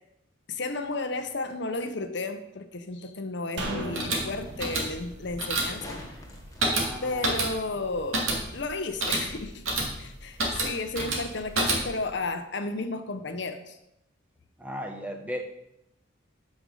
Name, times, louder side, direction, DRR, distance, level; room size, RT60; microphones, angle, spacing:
voice 1, 0.5-6.0 6.6-9.6 10.0-13.8, left 3 dB, 55° left, 8 dB, 0.8 m, -33 dB
sound 1, 3.6-6.9 7.2-7.3, right 1 dB, 65° right, 1.7 m, -38 dB
sound 2, 3.8-12.1, right 2 dB, 85° right, 2.4 m, -30 dB
sound 3, 5.8-7.6 10.4-10.5, left 1 dB, 15° left, 1.2 m, -46 dB
voice 2, 6.7-7.3 14.6-15.4, equal, 5° right, 4 dB, 0.8 m, -36 dB
8.8 x 5.3 x 6.4 m, 0.85 s
head